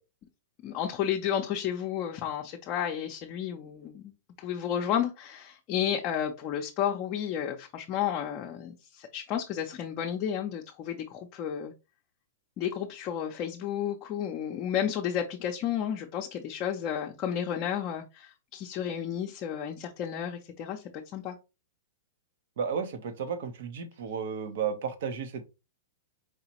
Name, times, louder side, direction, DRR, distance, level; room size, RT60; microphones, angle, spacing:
voice 1, 0.6-11.7 12.6-20.8 21.1-21.4, left 9 dB, 35° left, 0.6 m, -32 dB
voice 2, 22.6-25.5, right 6 dB, 60° right, 0.9 m, -33 dB
4.8 x 3.0 x 2.9 m
hypercardioid pair, 155°, 0 cm